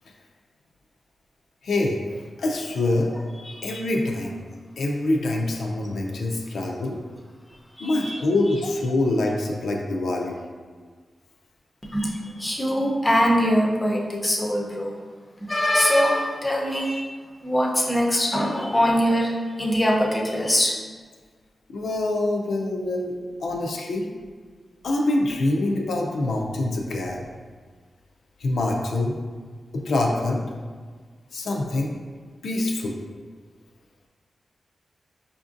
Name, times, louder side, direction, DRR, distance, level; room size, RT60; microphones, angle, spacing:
voice 1, 1.6-2.0 2.4-3.1 3.6-4.4 4.8-7.0 7.8-10.4 21.7-23.1 23.4-24.1 24.8-27.2 28.4-29.2 29.7-30.4 31.3-32.0 32.4-33.0, left 2 dB, 85° left, 0 dB, 0.4 m, -25 dB
voice 2, 7.8-8.2 11.9-14.9 15.5-17.0 17.4-19.3 19.6-20.7, equal, 15° left, -2 dB, 0.5 m, -22 dB
5.0 x 2.5 x 2.4 m, 1.5 s
wide cardioid pair, 120°, 0 cm